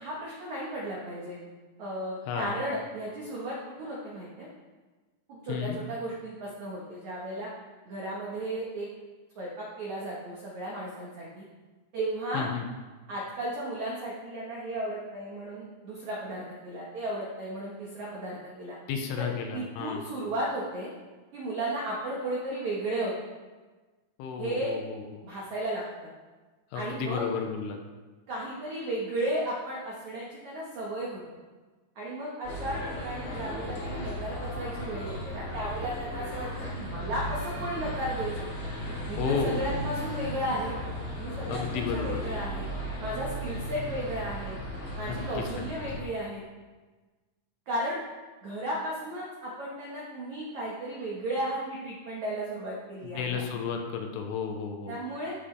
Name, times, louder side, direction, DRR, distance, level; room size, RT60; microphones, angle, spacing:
voice 1, 0.0-1.4 1.8-4.5 5.3-7.5 7.9-8.9 9.4-11.4 11.9-12.5 13.1-18.8 19.2-19.3 19.5-20.9 21.3-23.1 24.4-24.7 25.2-25.8 26.7-27.3 28.3-31.2 32.0-36.5 36.7-38.4 39.1-40.7 41.2-42.7 43.0-44.6 45.0-46.4 47.7-48.0 48.4-53.4 54.9-55.3, right 1 dB, 80° right, -5 dB, 1.6 m, -34 dB
voice 2, 2.3-2.6 5.5-5.8 12.3-12.7 18.9-20.1 24.2-25.2 26.7-27.8 39.2-39.7 41.5-42.2 45.1-45.5 53.0-55.0, left 6 dB, 85° left, 3 dB, 3.4 m, -32 dB
sound 1, 32.4-46.0, equal, 40° left, 2.0 m, -35 dB
14.0 x 7.7 x 3.4 m, 1.3 s
omnidirectional pair, 5.8 m